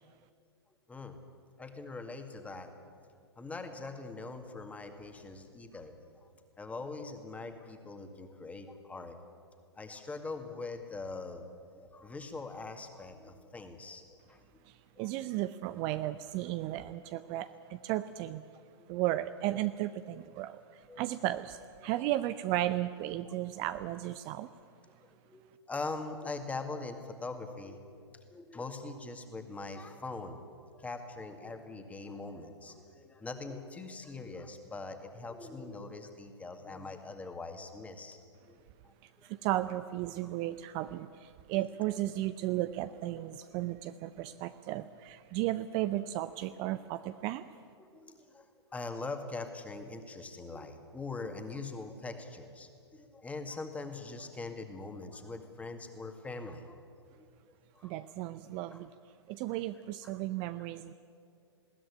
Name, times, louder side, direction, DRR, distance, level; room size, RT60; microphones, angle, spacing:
voice 1, 1.6-2.7 3.4-5.9 6.2-6.3 6.6-9.2 9.8-11.5 11.8-14.4 15.0-15.1 18.8-18.9 20.9-21.1 21.8-22.1 25.0-25.4 25.7-28.1 28.3-30.4 30.7-38.2 38.5-38.6 39.2-39.4 41.5-41.8 47.8-56.8 57.2-57.3 57.8-57.9 58.7-58.8 60.0-60.1, left 3 dB, 10° left, 6 dB, 2.1 m, -42 dB
voice 2, 14.7-18.4 18.9-24.5 39.2-47.4 57.8-58.9 59.3-60.9, right 14 dB, 35° right, 12 dB, 0.6 m, -34 dB
21.0 x 16.5 x 9.9 m, 2.3 s
figure-of-eight pair, 110°, 14 cm